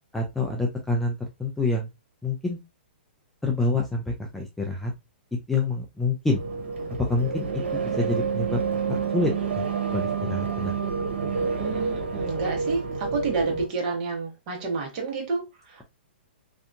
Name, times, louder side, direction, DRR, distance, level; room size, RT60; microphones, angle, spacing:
voice 1, 0.1-1.9 2.2-2.6 3.4-4.9 5.5-6.4 7.1-8.6 8.9-10.8, left 2 dB, 5° left, 1 dB, 0.4 m, -27 dB
sound 1, 6.3-13.7, right 5 dB, 85° right, 0.9 m, -28 dB
voice 2, 11.6-15.4 15.7-15.8, right 4 dB, 40° right, 1 dB, 1.1 m, -29 dB
2.7 x 2.3 x 2.5 m, 0.22 s
hypercardioid pair, 150°, 6 cm